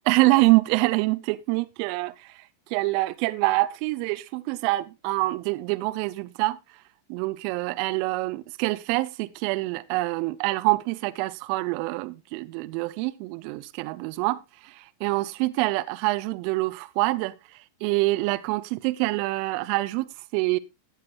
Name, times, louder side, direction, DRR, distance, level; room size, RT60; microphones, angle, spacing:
voice 1, 0.1-2.4 2.7-6.6 7.1-14.4 15.0-17.3 17.8-20.1 20.3-20.6, right 21 dB, 45° right, 0.5 m, -25 dB
14.5 x 9.1 x 2.5 m
figure-of-eight pair, 90°, 0 cm